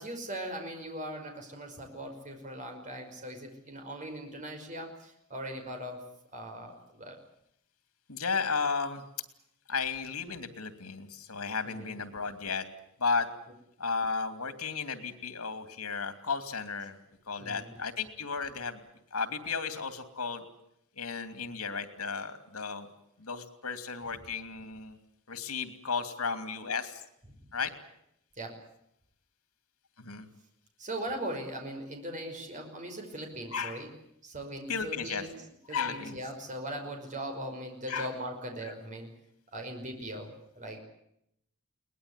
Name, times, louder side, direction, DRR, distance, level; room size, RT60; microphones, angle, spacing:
voice 1, 0.0-6.0 6.3-7.2 11.6-12.0 17.4-17.8 28.4-28.6 30.8-33.9 34.2-35.4 35.7-39.1 39.5-40.8, right 1 dB, 35° right, 4 dB, 5.5 m, -40 dB
voice 2, 8.1-9.0 9.7-12.7 13.0-13.3 13.8-17.0 17.3-18.8 19.1-20.4 21.0-22.9 23.2-25.0 25.3-27.0 27.5-27.7 30.0-30.3 33.5-33.8 34.7-35.2 35.7-36.2 37.9-38.1, left 5 dB, 85° left, 9 dB, 2.8 m, -34 dB
22.5 x 19.5 x 9.8 m, 0.76 s
head